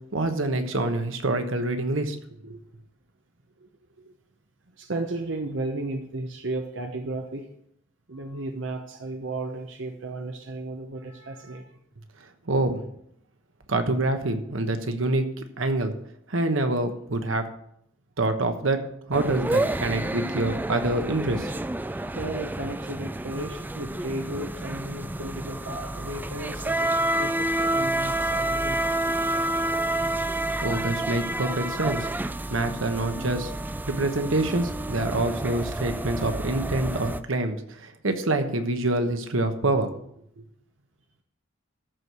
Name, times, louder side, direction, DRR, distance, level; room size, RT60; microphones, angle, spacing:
voice 1, 0.1-2.2 2.4-2.6 12.5-12.8 13.7-15.3 15.6-15.9 16.3-17.5 18.2-18.8 19.1-21.5 30.6-32.1 32.5-33.5 33.9-39.9 40.4-40.5, right 2 dB, 85° right, 7 dB, 1.2 m, -26 dB
voice 2, 4.8-7.5 8.1-11.8 21.9-29.2, right 2 dB, 65° right, 4 dB, 1.0 m, -34 dB
sound 1, 19.1-37.2, right 1 dB, 10° right, 0.3 m, -29 dB
14.0 x 4.7 x 6.7 m, 0.73 s
head